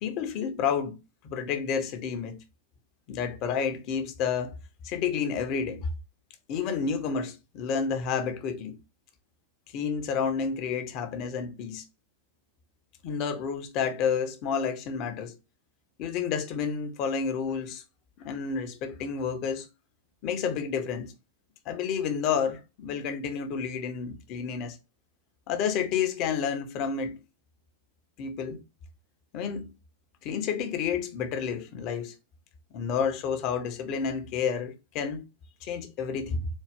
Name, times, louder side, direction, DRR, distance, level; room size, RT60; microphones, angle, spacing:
voice 1, 0.0-1.0 1.2-2.4 3.1-4.5 4.8-5.9 6.5-8.8 9.7-11.8 13.0-15.4 16.0-17.8 18.2-19.7 20.2-21.1 21.7-24.8 25.5-27.2 28.2-28.6 29.3-29.7 30.2-32.1 32.7-35.3 35.6-36.5, left 6 dB, 45° left, 0.9 m, -30 dB
4.1 x 2.4 x 3.5 m
figure-of-eight pair, 95°, 0 cm